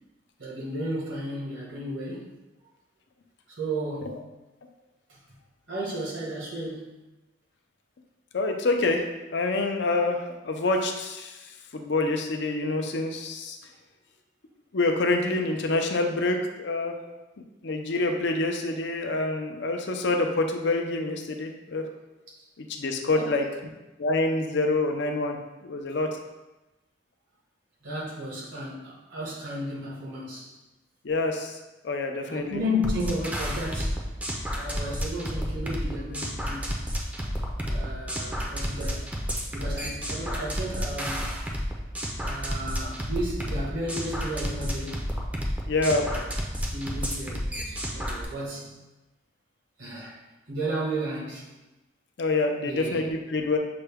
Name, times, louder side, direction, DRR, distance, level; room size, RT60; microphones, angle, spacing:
voice 1, 0.4-2.3 3.6-4.3 5.1-5.2 5.7-7.0 23.1-23.4 27.8-30.5 32.2-34.0 34.5-36.8 37.7-39.1 39.5-41.3 42.2-45.0 45.9-46.2 46.6-48.8 49.8-50.2 50.5-51.5 52.6-53.0, equal, 80° right, -5 dB, 1.5 m, -33 dB
voice 2, 8.3-9.0 9.3-11.4 11.7-13.6 14.7-17.0 17.6-21.9 22.6-23.5 24.0-25.4 25.6-26.1 31.0-31.6 31.8-32.6 45.7-46.1 52.2-53.6, left 2 dB, 65° left, 4 dB, 0.5 m, -26 dB
sound 1, 32.8-48.2, equal, 10° right, 0.5 m, -31 dB
6.7 x 2.2 x 3.5 m, 1.1 s
head